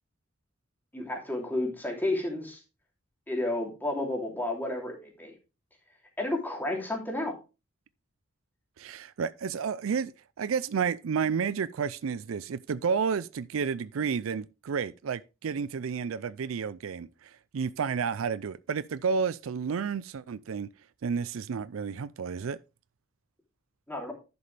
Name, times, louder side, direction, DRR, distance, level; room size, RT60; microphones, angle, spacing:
voice 1, 0.9-2.6 3.3-5.3 6.2-7.3 23.9-24.1, left 1 dB, 10° left, 2.9 m, -31 dB
voice 2, 8.8-10.1 10.4-20.7 21.0-22.6, right 6 dB, 70° right, 0.4 m, -31 dB
11.0 x 6.9 x 3.3 m
head